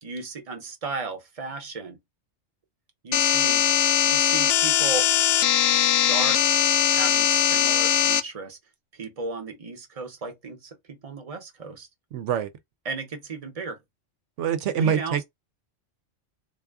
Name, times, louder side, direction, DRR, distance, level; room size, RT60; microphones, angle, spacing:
voice 1, 0.0-2.0 3.0-3.6 4.0-5.1 5.7-6.4 6.8-8.6 8.9-11.9 12.8-13.8 14.8-15.2, right 4 dB, 35° right, 0.8 m, -35 dB
sound 1, 3.1-8.2, left 10 dB, 65° left, 0.7 m, -21 dB
voice 2, 12.1-12.5 14.4-15.2, right 8 dB, 75° right, 0.9 m, -25 dB
3.9 x 2.4 x 3.5 m
omnidirectional pair, 1.3 m